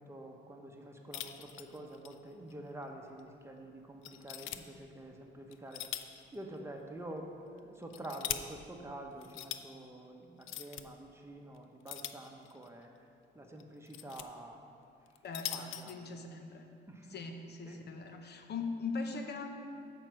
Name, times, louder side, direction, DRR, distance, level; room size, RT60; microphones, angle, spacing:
voice 1, 0.0-5.8 6.3-12.9 13.3-14.6 15.5-15.9 16.9-17.2 17.6-17.8, right 1 dB, 15° right, 2 dB, 0.9 m, -47 dB
sound 1, 1.1-2.2 2.5-2.6 3.2-3.3 4.0-4.6 5.5-6.2 6.5-6.6 7.6-8.4 9.2-9.6 10.4-10.8 11.9-12.7 13.6-14.2 15.1-15.9, left 12 dB, 85° left, 0.4 m, -41 dB
voice 2, 15.2-16.7 17.1-19.5, left 4 dB, 55° left, 5 dB, 0.8 m, -40 dB
8.9 x 4.6 x 6.3 m, 2.4 s
cardioid pair, 90°, 20 cm